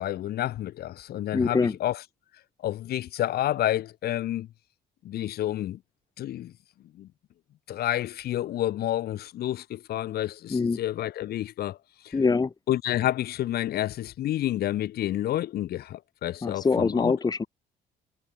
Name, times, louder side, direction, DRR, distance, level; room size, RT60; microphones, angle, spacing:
voice 1, 0.0-2.0 2.6-4.5 5.0-5.8 6.2-6.5 6.9-7.1 7.7-11.8 12.0-12.2 12.7-17.2, left 13 dB, 65° left, 5.2 m, -29 dB
voice 2, 1.3-1.7 10.5-10.8 12.1-12.5 16.4-17.4, left 4 dB, 25° left, 2.0 m, -24 dB
cardioid pair, 110°, 17 cm